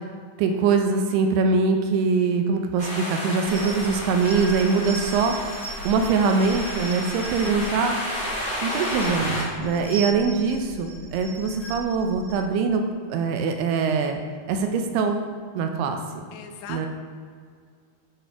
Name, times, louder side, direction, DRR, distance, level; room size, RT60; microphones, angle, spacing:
voice 1, 0.4-8.0 8.6-12.8 13.1-14.2 14.5-15.2 15.6-16.0 16.7-16.9, right 4 dB, 85° right, 4 dB, 2.6 m, -23 dB
sound 1, 2.8-9.4, equal, 20° right, 1.1 m, -32 dB
sound 2, 3.5-12.4, right 1 dB, 60° left, 2.8 m, -38 dB
voice 2, 16.3-16.9, left 7 dB, 80° left, 3 dB, 1.9 m, -39 dB
8.6 x 5.1 x 4.5 m, 2.1 s
omnidirectional pair, 4.6 m